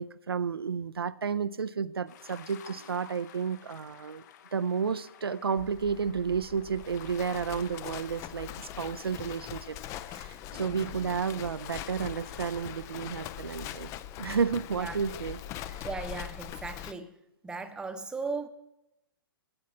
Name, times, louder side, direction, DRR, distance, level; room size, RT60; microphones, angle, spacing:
voice 1, 0.0-4.2 4.5-9.8 10.1-13.9 14.2-15.4 15.7-15.8, right 6 dB, 80° right, 0.5 m, -32 dB
sound 1, 2.1-14.0, left 9 dB, 45° left, 1.0 m, -52 dB
Livestock farm animals working animals, 5.6-16.9, left 11 dB, 25° left, 0.5 m, -42 dB
voice 2, 15.8-17.1 17.4-18.5, right 4 dB, 5° right, 0.8 m, -36 dB
9.6 x 7.4 x 8.6 m
figure-of-eight pair, 120°, 13 cm